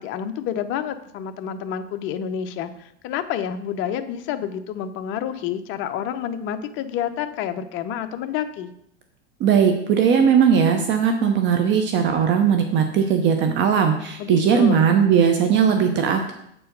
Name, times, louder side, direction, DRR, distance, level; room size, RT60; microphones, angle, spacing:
voice 1, 0.0-8.7 14.2-14.9, left 9 dB, 40° left, 9 dB, 0.6 m, -29 dB
voice 2, 9.4-16.3, right 7 dB, 35° right, 5 dB, 0.8 m, -18 dB
7.5 x 4.6 x 5.3 m, 0.73 s
supercardioid pair, 130°, 32 cm